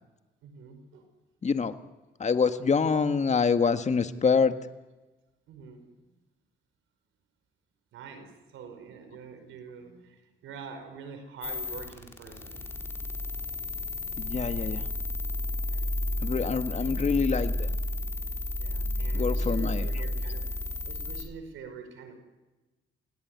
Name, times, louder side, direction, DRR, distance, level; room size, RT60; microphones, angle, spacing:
voice 1, 0.4-1.1 5.5-6.2 7.9-12.7 15.7-15.9 16.8-17.0 18.5-20.5 20.8-22.2, right 5 dB, 85° right, 8 dB, 5.2 m, -45 dB
voice 2, 1.4-1.7 2.2-4.5 14.2-14.9 16.2-17.7 19.1-19.9, left 5 dB, 35° left, 9 dB, 1.8 m, -26 dB
sound 1, 11.4-21.2, left 1 dB, 10° left, 3.8 m, -32 dB
28.5 x 18.0 x 9.6 m, 1.1 s
cardioid pair, 90°, 20 cm